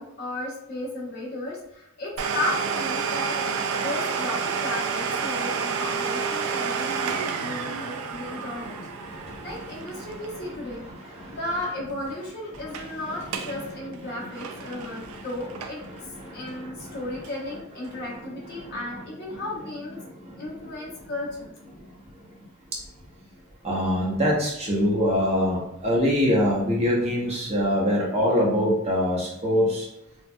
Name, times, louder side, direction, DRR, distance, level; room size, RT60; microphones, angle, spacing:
voice 1, 0.0-3.4 3.8-8.8 9.1-15.8 16.3-20.0 20.4-21.6, left 2 dB, 45° left, -4 dB, 0.9 m, -34 dB
Domestic sounds home sounds, 2.2-11.6 11.9-12.0 12.5-12.9 13.2-13.6 13.9-16.0 16.5-16.6 17.2-17.3, right 5 dB, 75° right, 0.4 m, -30 dB
voice 2, 8.1-10.1 10.4-10.5 11.2-11.4 13.1-13.2 14.7-15.2 15.9-17.0 17.9-18.0 18.5-18.7 19.3-19.4 20.1-20.7 23.6-29.9, equal, 30° right, -4 dB, 0.7 m, -25 dB
4.2 x 2.2 x 2.2 m, 0.84 s
head